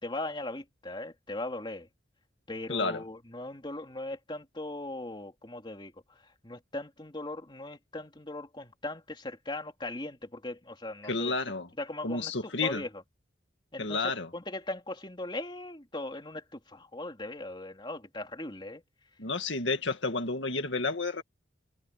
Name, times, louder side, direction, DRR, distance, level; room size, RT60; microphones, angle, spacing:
voice 1, 0.0-1.9 2.5-5.9 6.4-11.3 11.8-12.3 12.6-12.9 13.7-18.8, left 2 dB, 25° left, 3.1 m, -39 dB
voice 2, 2.7-3.0 11.0-11.7 12.0-12.8 13.8-14.3 19.2-21.2, left 3 dB, 70° left, 2.1 m, -31 dB
head